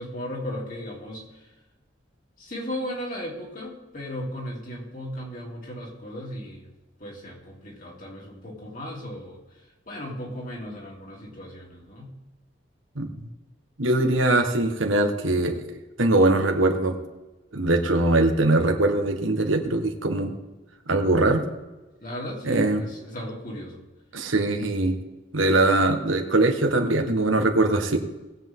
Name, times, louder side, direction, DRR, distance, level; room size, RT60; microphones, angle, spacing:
voice 1, 0.0-1.5 2.4-6.7 7.0-12.1 22.0-23.8, equal, 40° left, -2 dB, 3.3 m, -36 dB
voice 2, 13.8-15.6 16.0-16.9 17.5-20.3 20.9-21.4 22.4-22.8 24.1-25.0 25.3-28.0, right 2 dB, 90° right, 5 dB, 1.6 m, -21 dB
19.5 x 8.2 x 3.8 m, 1.1 s
head